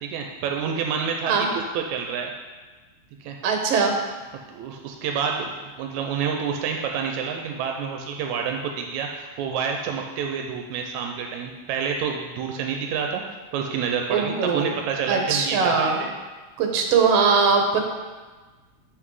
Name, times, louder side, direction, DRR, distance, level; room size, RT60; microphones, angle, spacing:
voice 1, 0.0-1.5 1.7-2.3 3.2-3.4 4.5-13.2 13.5-16.1, right 6 dB, 85° right, 2 dB, 2.0 m, -28 dB
voice 2, 1.3-1.6 3.4-3.9 14.1-14.7 15.1-16.0 16.6-17.8, right 5 dB, 65° right, 2 dB, 2.0 m, -21 dB
7.7 x 5.8 x 4.8 m, 1.3 s
omnidirectional pair, 3.3 m